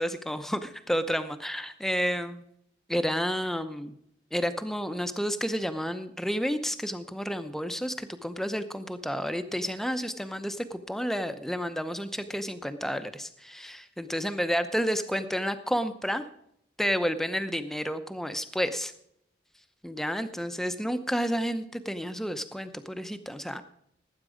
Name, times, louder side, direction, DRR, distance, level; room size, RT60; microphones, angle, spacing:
voice 1, 0.0-2.4 2.9-3.9 4.3-16.2 16.8-18.9 19.8-23.6, equal, ahead, 9 dB, 0.7 m, -30 dB
18.5 x 8.9 x 5.0 m, 0.73 s
head